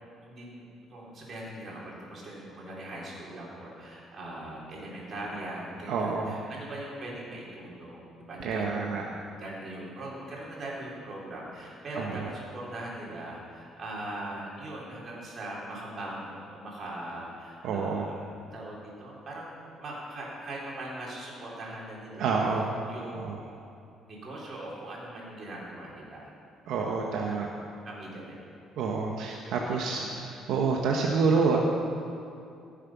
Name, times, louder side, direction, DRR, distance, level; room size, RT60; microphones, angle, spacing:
voice 1, 0.0-18.2 18.5-23.6 24.1-26.4 26.8-27.5 27.8-28.5 29.3-30.2, right 1 dB, 40° right, -4 dB, 3.5 m, -41 dB
voice 2, 5.9-6.3 8.4-9.0 12.0-12.1 17.6-18.1 22.2-22.7 23.0-23.4 26.7-27.5 28.8-31.6, right 4 dB, 75° right, 0 dB, 1.0 m, -28 dB
15.0 x 7.4 x 6.0 m, 2.6 s
cardioid pair, 130°, 0 cm